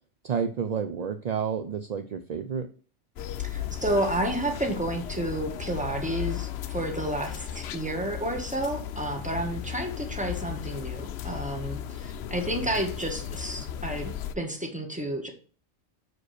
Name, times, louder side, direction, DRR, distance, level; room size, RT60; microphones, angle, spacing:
voice 1, 0.2-2.7, right 7 dB, 50° right, 8 dB, 0.5 m, -30 dB
sound 1, 3.2-14.3, left 9 dB, 65° left, 0.8 m, -35 dB
voice 2, 3.4-15.3, right 1 dB, 5° right, 3 dB, 1.5 m, -31 dB
6.3 x 5.0 x 6.5 m, 0.40 s
omnidirectional pair, 1.3 m